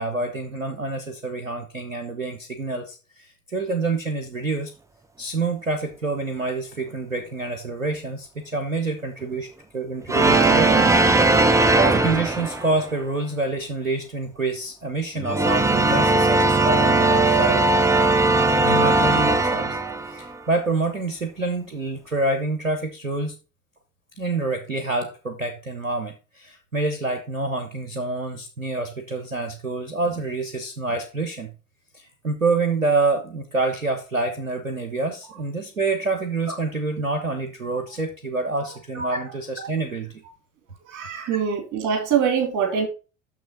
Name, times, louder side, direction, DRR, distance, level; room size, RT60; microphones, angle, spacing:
voice 1, 0.0-4.7 5.2-9.5 9.7-11.4 11.7-17.7 18.6-19.8 20.1-23.4 24.2-31.5 31.9-40.2, right 3 dB, 90° right, 0.8 m, -27 dB
sound 1, 10.1-12.9 15.2-20.4, right 2 dB, 10° right, 0.6 m, -19 dB
voice 2, 40.8-42.9, right 7 dB, 50° right, 2.8 m, -23 dB
6.5 x 6.1 x 3.9 m
figure-of-eight pair, 60°, 40 cm